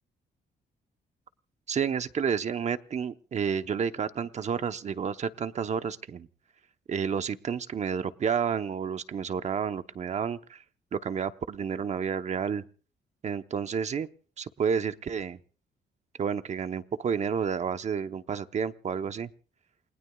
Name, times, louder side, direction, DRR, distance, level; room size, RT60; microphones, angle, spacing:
voice 1, 1.7-6.3 6.9-10.6 10.9-12.6 13.2-14.1 14.4-15.4 16.2-19.3, right 7 dB, 45° right, 10 dB, 0.9 m, -30 dB
29.0 x 20.0 x 2.3 m, 0.40 s
cardioid pair, 135°, 17 cm